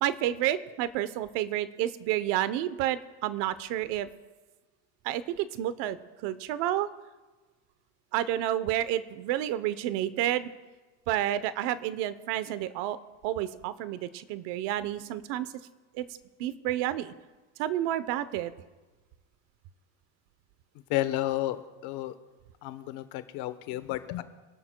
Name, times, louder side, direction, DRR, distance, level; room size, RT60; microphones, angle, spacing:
voice 1, 0.0-4.1 5.0-6.0 6.2-6.9 8.1-10.5 11.1-13.0 13.2-15.5 15.9-16.1 16.4-17.1 17.6-18.5, right 13 dB, 70° right, 14 dB, 0.9 m, -30 dB
voice 2, 20.9-22.1 22.6-24.2, left 15 dB, 65° left, 11 dB, 1.1 m, -32 dB
25.5 x 12.5 x 2.3 m, 1.2 s
supercardioid pair, 110°, 42 cm